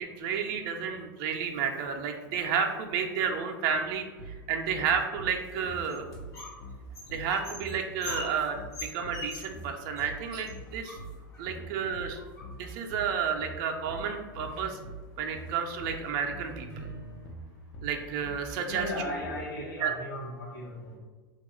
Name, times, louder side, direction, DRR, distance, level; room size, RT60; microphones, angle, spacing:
voice 1, 0.0-6.1 7.1-11.0 11.4-12.2 12.5-14.8 15.2-16.9 17.8-18.9 19.8-19.9, right 6 dB, 50° right, 3 dB, 0.4 m, -31 dB
sound 1, 4.2-19.4, right 2 dB, 50° left, 0.6 m, -44 dB
sound 2, 5.4-6.6 6.9-9.7 10.0-10.1 10.3-11.5 12.1-12.8 13.9-14.0 14.3-14.8 15.3-15.5 15.9-16.0 16.5-17.3, left 2 dB, 30° left, 1.1 m, -43 dB
voice 2, 18.7-21.0, left 1 dB, 80° left, -3 dB, 1.0 m, -37 dB
3.5 x 2.3 x 3.0 m, 1.4 s
hypercardioid pair, 100°, 11 cm